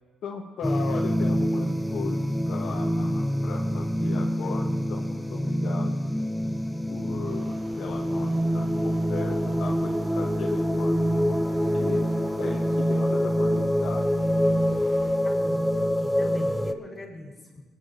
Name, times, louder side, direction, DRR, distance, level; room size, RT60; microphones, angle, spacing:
voice 1, 0.2-6.2 6.9-12.1 12.4-14.1, left 6 dB, 70° left, 0 dB, 1.3 m, -38 dB
sound 1, 0.6-16.7, equal, 5° left, 0.6 m, -25 dB
sound 2, 7.3-15.2, right 3 dB, 85° right, 3.1 m, -49 dB
voice 2, 15.2-17.6, left 1 dB, 20° left, 0 dB, 5.2 m, -41 dB
20.5 x 10.0 x 4.3 m, 1.2 s
cardioid pair, 90°, 0 cm